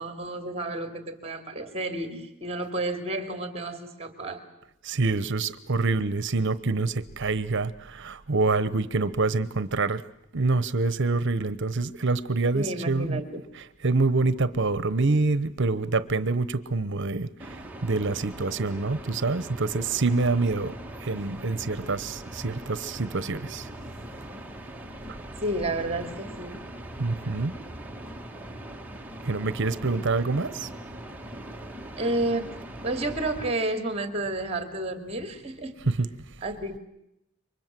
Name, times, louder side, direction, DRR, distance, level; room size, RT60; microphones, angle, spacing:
voice 1, 0.0-4.4 12.5-13.4 25.4-26.6 32.0-32.5 32.8-35.8 36.4-36.8, right 2 dB, 30° right, 8 dB, 2.7 m, -31 dB
voice 2, 4.8-10.0 10.3-13.2 13.8-20.8 21.0-23.7 27.0-27.6 29.2-30.7 35.9-36.1, right 3 dB, 60° right, 15 dB, 1.0 m, -26 dB
sound 1, 17.4-33.5, right 1 dB, 10° right, 1.7 m, -41 dB
29.0 x 24.5 x 7.6 m, 0.82 s
head